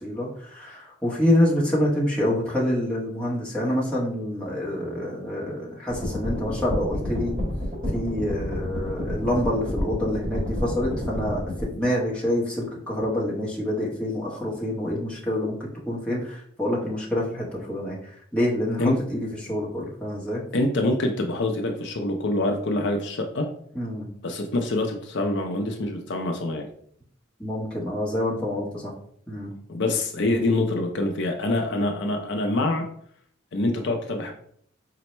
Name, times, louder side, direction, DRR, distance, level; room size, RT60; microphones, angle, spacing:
voice 1, 0.0-7.3 7.9-18.0 18.3-20.4 23.7-24.1 27.4-28.9 29.3-29.5 31.8-31.9, left 1 dB, 5° left, -6 dB, 0.9 m, -27 dB
sound 1, 5.9-11.6, left 1 dB, 30° right, 1.6 m, -30 dB
voice 2, 20.5-23.5 24.2-26.7 29.7-32.8 33.5-34.3, left 2 dB, 60° left, 4 dB, 0.5 m, -25 dB
4.3 x 2.0 x 4.2 m, 0.63 s
head